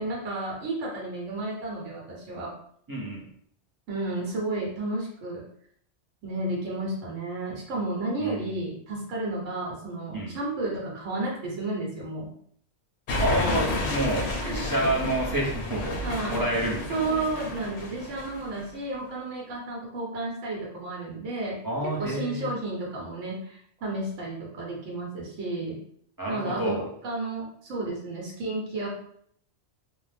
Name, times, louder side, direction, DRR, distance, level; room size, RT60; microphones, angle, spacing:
voice 1, 0.0-2.5 3.9-5.4 6.2-12.3 14.4-14.6 16.0-16.4 16.9-21.6 22.0-25.8 26.3-28.9, right 2 dB, 85° right, -3 dB, 1.1 m, -32 dB
voice 2, 2.9-3.2 8.2-8.5 10.1-10.4 13.2-16.0 16.3-17.0 21.6-22.5 26.2-26.9, right 1 dB, 30° right, -4 dB, 0.4 m, -29 dB
sound 1, 13.1-18.6, left 2 dB, 65° left, 0.7 m, -31 dB
2.5 x 2.0 x 3.2 m, 0.64 s
omnidirectional pair, 1.2 m